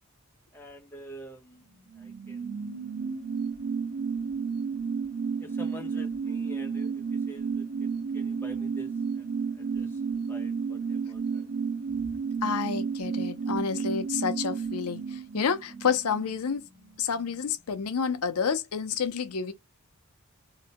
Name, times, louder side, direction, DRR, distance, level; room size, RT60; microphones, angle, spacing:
voice 1, 0.5-1.6 2.0-2.8 5.4-10.0 10.3-11.5, equal, 10° left, 0.7 m, -48 dB
sound 1, 1.7-17.0 17.2-17.3, right 5 dB, 85° right, 1.3 m, -32 dB
voice 2, 12.4-16.6 17.0-19.5, left 6 dB, 85° left, 0.6 m, -29 dB
2.8 x 2.1 x 2.8 m
head